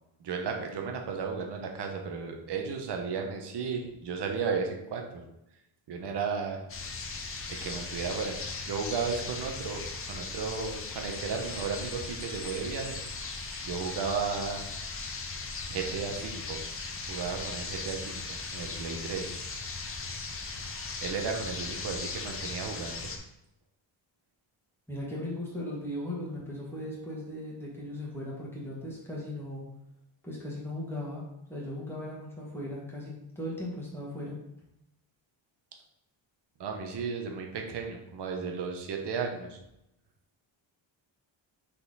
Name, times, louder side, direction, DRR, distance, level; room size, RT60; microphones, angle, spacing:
voice 1, 0.2-5.2 5.9-6.6 7.5-13.0 13.6-14.6 15.7-16.6 17.1-19.3 21.0-23.1 36.6-39.6, right 5 dB, 60° right, 3 dB, 1.0 m, -34 dB
sound 1, 6.7-23.2, left 3 dB, 30° left, 0.7 m, -38 dB
voice 2, 24.9-29.6 30.2-31.2 31.5-34.4, left 1 dB, 5° left, -5 dB, 1.7 m, -37 dB
5.8 x 4.2 x 4.0 m, 0.84 s
wide cardioid pair, 160°, 47 cm